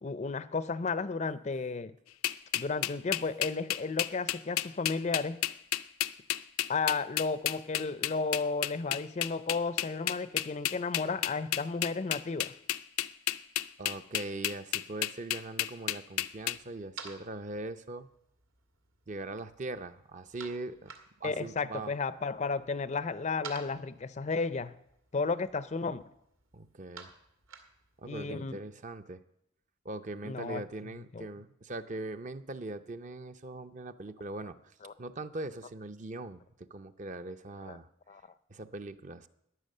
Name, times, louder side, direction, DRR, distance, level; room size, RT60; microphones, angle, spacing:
voice 1, 0.0-1.9 2.5-5.4 6.7-12.5 21.2-24.7 25.1-26.0 28.1-28.6 30.2-30.6 31.1-31.3 34.8-34.9 37.7-37.8 38.1-38.2, left 4 dB, 35° left, 15 dB, 0.4 m, -33 dB
sound 1, 2.2-16.6, left 13 dB, 90° left, 0.5 m, -31 dB
voice 2, 13.8-18.1 19.1-20.9 21.2-21.9 26.5-27.1 28.0-29.2 29.8-34.6 35.0-37.9 38.5-39.3, right 2 dB, 35° right, 10 dB, 0.6 m, -41 dB
sound 2, 16.3-28.3, right 5 dB, 80° right, 1.9 m, -53 dB
14.0 x 10.0 x 6.6 m, 0.79 s
head